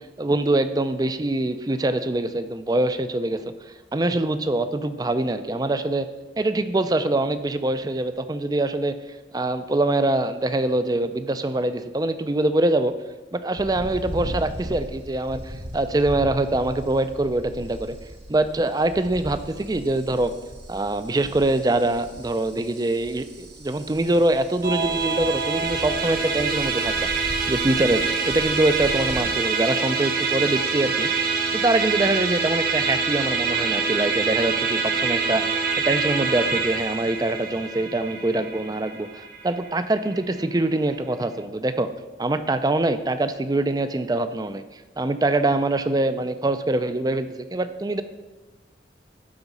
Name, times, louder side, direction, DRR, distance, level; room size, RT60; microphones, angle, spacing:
voice 1, 0.0-3.4 3.9-6.1 6.4-9.0 9.3-12.9 13.3-18.0 18.3-20.3 20.7-27.1 27.5-31.1 31.5-41.9 42.2-44.6 45.0-48.0, right 2 dB, 20° right, 11 dB, 0.4 m, -24 dB
sound 1, 13.6-29.2, equal, 85° right, 2.1 m, -38 dB
Musical instrument, 24.6-40.1, right 5 dB, 55° right, 1.1 m, -25 dB
12.0 x 4.1 x 5.4 m, 1.1 s
head